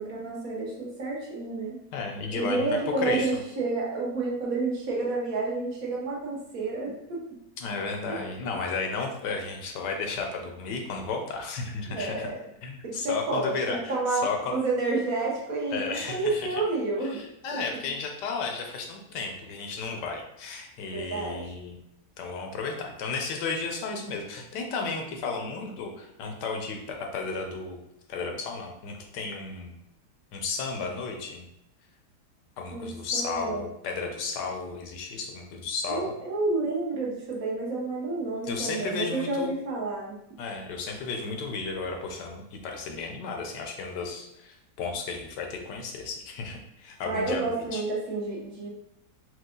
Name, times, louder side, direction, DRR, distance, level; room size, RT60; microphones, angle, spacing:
voice 1, 0.0-1.8 2.3-7.4 8.1-8.4 11.9-12.3 12.8-17.2 17.5-17.8 20.9-21.5 32.7-33.6 35.9-40.1 47.0-48.7, right 3 dB, 60° right, -3 dB, 1.4 m, -30 dB
voice 2, 1.9-2.7 3.0-3.3 7.6-12.3 12.6-14.5 15.7-16.6 17.1-21.8 22.2-27.8 28.1-29.7 30.3-31.5 32.6-36.1 38.5-39.5 40.4-47.5 47.7-47.8, left 4 dB, 85° left, 3 dB, 1.3 m, -33 dB
4.7 x 2.3 x 3.7 m, 0.83 s
omnidirectional pair, 1.8 m